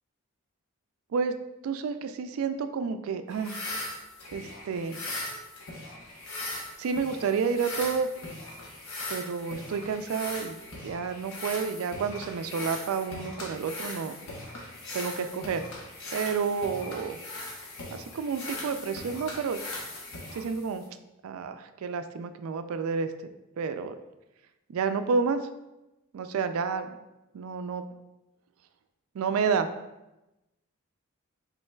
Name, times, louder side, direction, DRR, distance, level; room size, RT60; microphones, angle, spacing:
voice 1, 1.6-3.6 4.3-5.0 6.8-8.1 9.1-14.2 14.9-15.6 16.1-17.2 17.9-19.6 20.3-20.8 21.2-23.1 23.6-24.0 24.7-25.5 26.1-26.9 27.3-27.8 29.1-29.7, right 5 dB, 80° right, 9 dB, 0.3 m, -30 dB
sound 1, 3.3-20.9, left 2 dB, 70° left, 0.9 m, -39 dB
5.4 x 3.8 x 2.2 m, 0.97 s
head